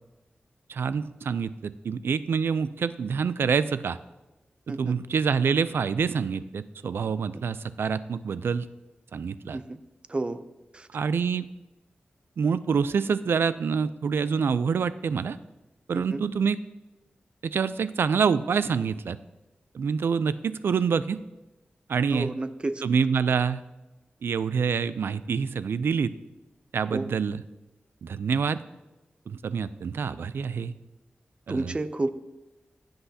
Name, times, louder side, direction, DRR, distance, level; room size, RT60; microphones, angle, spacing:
voice 1, 0.7-4.0 4.7-8.6 9.1-9.6 10.9-11.5 12.4-15.4 15.9-16.6 17.4-19.2 19.7-21.2 21.9-22.3 22.8-23.6 24.2-26.1 26.7-27.4 28.0-28.6 29.3-30.7 31.5-31.7, right 6 dB, 85° right, 15 dB, 0.4 m, -26 dB
voice 2, 4.7-5.0 7.3-7.4 9.5-9.8 10.1-10.4 10.7-10.9 15.9-16.2 22.1-22.8 23.1-23.4 26.9-27.1 31.5-32.1, right 2 dB, 30° right, 12 dB, 0.4 m, -31 dB
16.0 x 7.9 x 2.8 m, 1.0 s
wide cardioid pair, 135°, 4 cm